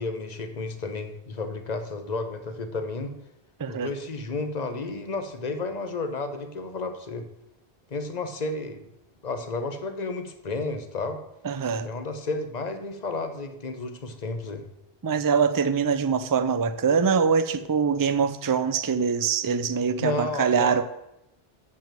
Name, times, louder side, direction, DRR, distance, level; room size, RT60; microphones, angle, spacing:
voice 1, 0.0-3.1 3.7-7.2 7.9-8.8 9.2-11.2 11.8-14.6 20.0-20.8, left 3 dB, 40° left, 8 dB, 1.1 m, -32 dB
voice 2, 11.4-11.9 15.0-20.8, right 6 dB, 30° right, 11 dB, 0.4 m, -23 dB
7.0 x 6.0 x 7.5 m, 0.83 s
omnidirectional pair, 1.1 m